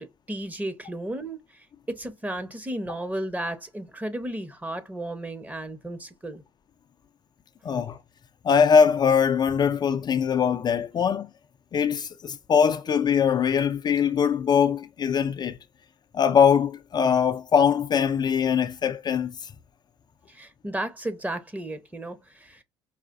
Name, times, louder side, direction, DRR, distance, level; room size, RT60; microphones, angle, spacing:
voice 1, 0.0-1.4 1.9-6.4 20.3-22.6, right 1 dB, 15° right, 0.9 m, -34 dB
voice 2, 7.6-8.0 8.4-11.3 11.7-15.6 16.1-19.5, left 7 dB, 40° left, 0.5 m, -22 dB
4.8 x 2.5 x 2.5 m
supercardioid pair, 70°, 11 cm